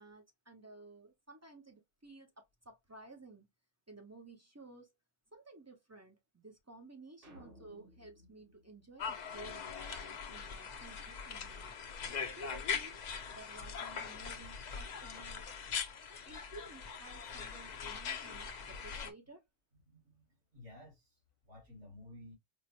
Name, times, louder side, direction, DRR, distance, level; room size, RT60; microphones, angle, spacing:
voice 1, 0.0-3.5 3.9-4.9 5.3-11.7 12.3-12.9 13.3-15.5 16.2-19.4, right 2 dB, 25° right, 0.4 m, -54 dB
sound 1, 7.2-9.7, equal, 50° right, 1.3 m, -60 dB
sound 2, 9.0-19.1, left 6 dB, 55° left, 0.5 m, -41 dB
voice 2, 19.9-22.3, left 1 dB, 75° right, 2.1 m, -55 dB
4.7 x 2.0 x 2.8 m
omnidirectional pair, 1.2 m